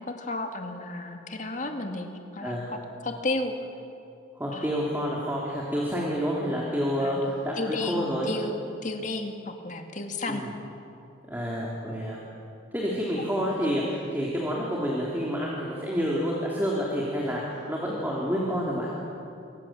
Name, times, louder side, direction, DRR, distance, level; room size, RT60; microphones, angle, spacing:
voice 1, 0.0-3.6 4.5-4.7 7.0-10.4 13.2-13.3, left 2 dB, 40° left, 4 dB, 2.3 m, -33 dB
voice 2, 4.4-8.3 10.3-10.5 11.3-12.2 12.7-18.9, equal, 10° right, -4 dB, 3.3 m, -28 dB
26.5 x 25.0 x 7.7 m, 2.7 s
head